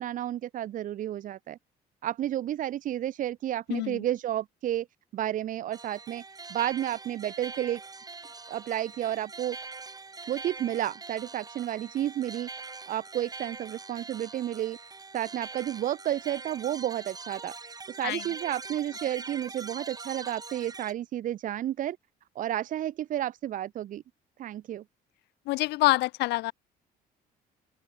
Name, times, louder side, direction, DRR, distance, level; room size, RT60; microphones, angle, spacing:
voice 1, 0.0-1.6 2.0-4.9 5.1-6.2 6.5-7.8 8.5-9.6 10.3-12.5 12.9-14.8 15.1-17.5 17.9-22.0 22.4-24.0 24.4-24.8, right 12 dB, 50° right, 0.6 m, -31 dB
voice 2, 3.7-4.0 18.0-18.2 25.5-26.5, left 20 dB, 85° left, 0.8 m, -26 dB
sound 1, 5.7-20.9, right 4 dB, 20° right, 4.5 m, -43 dB
open air
cardioid pair, 110°, 17 cm